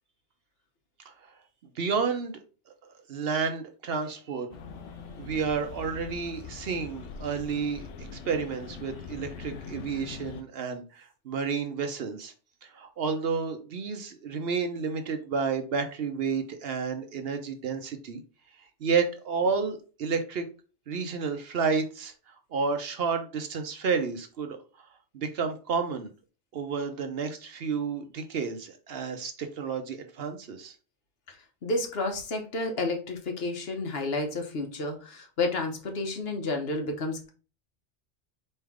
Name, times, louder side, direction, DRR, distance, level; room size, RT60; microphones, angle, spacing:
voice 1, 1.8-2.4 3.1-4.5 5.2-12.3 12.6-18.2 18.8-20.4 20.9-22.1 22.5-24.6 25.1-26.1 26.5-30.7, right 5 dB, 60° right, 7 dB, 0.9 m, -31 dB
sound 1, 4.5-10.4, left 5 dB, 85° left, 0.9 m, -42 dB
voice 2, 31.6-37.3, left 2 dB, 60° left, 4 dB, 1.1 m, -31 dB
4.4 x 3.3 x 3.5 m, 0.36 s
omnidirectional pair, 1.2 m